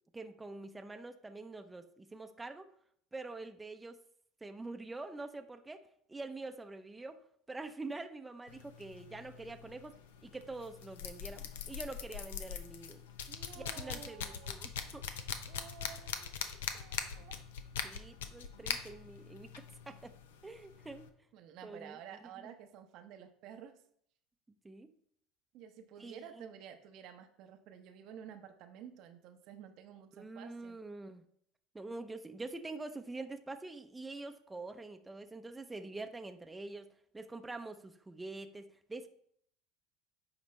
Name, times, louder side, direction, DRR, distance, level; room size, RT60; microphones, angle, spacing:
voice 1, 0.1-2.7 3.1-4.0 4.4-5.8 6.1-7.2 7.5-10.0 10.2-13.0 13.6-15.1 17.8-20.1 20.4-21.1 21.6-22.0 24.6-24.9 26.0-26.5 30.1-31.2 31.7-36.9 37.1-39.1, right 3 dB, 15° right, 6 dB, 0.7 m, -45 dB
sound 1, 8.5-21.1, left 8 dB, 80° left, 0.7 m, -43 dB
voice 2, 13.3-14.5 15.5-17.4 21.3-23.7 25.5-30.8, right 9 dB, 60° right, 7 dB, 0.8 m, -52 dB
8.7 x 4.9 x 3.3 m, 0.66 s
hypercardioid pair, 80°, 0 cm